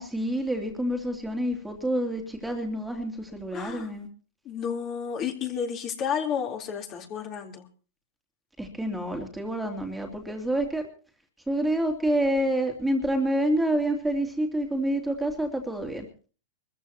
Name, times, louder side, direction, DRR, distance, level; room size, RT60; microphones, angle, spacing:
voice 1, 0.0-4.1 8.6-10.9 11.5-16.1, right 1 dB, 5° right, 2 dB, 2.8 m, -28 dB
voice 2, 3.5-3.9 4.5-7.7, left 7 dB, 40° left, 2 dB, 3.6 m, -31 dB
25.0 x 14.5 x 2.9 m, 0.36 s
hypercardioid pair, 120°, 0 cm